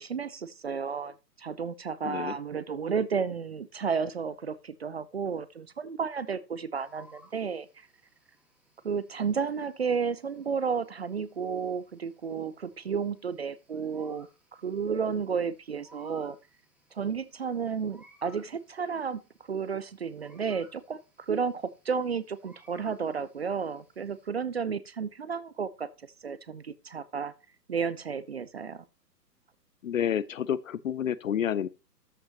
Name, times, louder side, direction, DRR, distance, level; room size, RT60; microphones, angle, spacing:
voice 1, 0.0-7.9 8.8-14.3 14.6-16.4 16.9-19.2 19.5-25.9 26.2-27.3 27.7-28.8, right 6 dB, 45° right, 0.4 m, -32 dB
sound 1, 6.8-24.3, right 1 dB, ahead, 1.4 m, -61 dB
voice 2, 29.8-31.7, left 9 dB, 55° left, 0.5 m, -29 dB
13.0 x 5.6 x 2.8 m
figure-of-eight pair, 120°, 50 cm